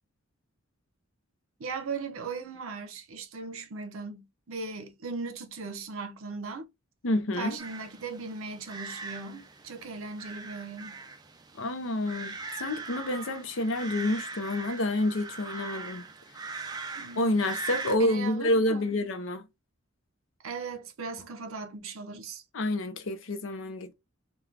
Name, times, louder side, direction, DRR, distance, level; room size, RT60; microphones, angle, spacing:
voice 1, 1.6-6.7 7.3-11.0 16.9-17.6 18.0-18.9 20.4-22.4, right 4 dB, 85° right, 0.6 m, -38 dB
voice 2, 7.0-7.6 11.6-16.0 16.4-16.5 17.2-19.4 22.5-23.9, left 1 dB, 70° left, 0.6 m, -28 dB
sound 1, 7.6-18.0, right 4 dB, 20° right, 0.4 m, -41 dB
3.2 x 2.2 x 2.3 m
head